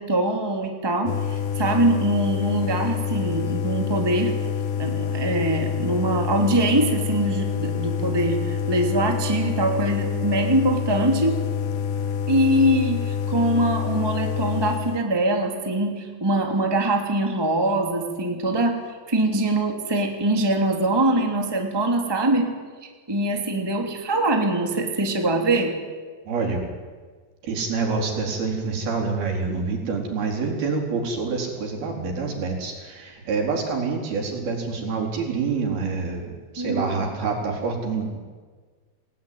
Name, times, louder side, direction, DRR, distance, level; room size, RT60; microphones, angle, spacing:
voice 1, 0.0-4.3 4.8-11.4 12.3-18.8 19.1-22.5 22.8-25.7 36.6-37.0, right 1 dB, 5° right, 3 dB, 2.3 m, -23 dB
sound 1, 1.1-15.0, left 7 dB, 65° left, 2.4 m, -27 dB
voice 2, 26.3-26.7 27.4-38.2, right 4 dB, 70° right, 1 dB, 6.1 m, -27 dB
29.5 x 19.0 x 9.4 m, 1.5 s
omnidirectional pair, 4.6 m